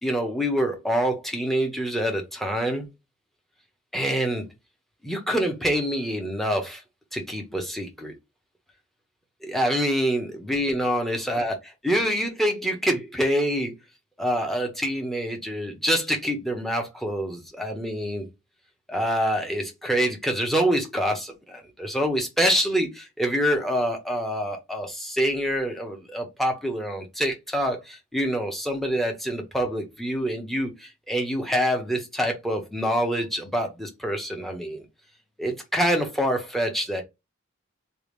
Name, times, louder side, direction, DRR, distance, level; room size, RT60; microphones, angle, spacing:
voice 1, 0.0-2.9 3.9-4.5 5.0-6.8 7.1-8.1 9.4-13.7 14.2-18.3 18.9-34.8 35.4-37.0, equal, ahead, 1.0 m, -26 dB
3.5 x 2.6 x 3.2 m
head